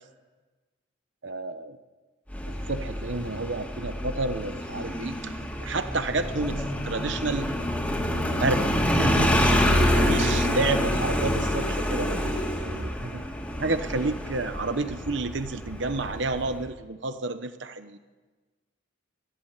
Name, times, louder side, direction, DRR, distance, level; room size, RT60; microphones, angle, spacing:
voice 1, 1.2-1.8 2.5-7.5 8.3-13.2 13.6-18.0, right 3 dB, 65° right, 10 dB, 1.0 m, -30 dB
Motorcycle, 2.3-16.6, equal, 10° left, 2.9 m, -27 dB
21.5 x 14.5 x 10.0 m, 1.3 s
head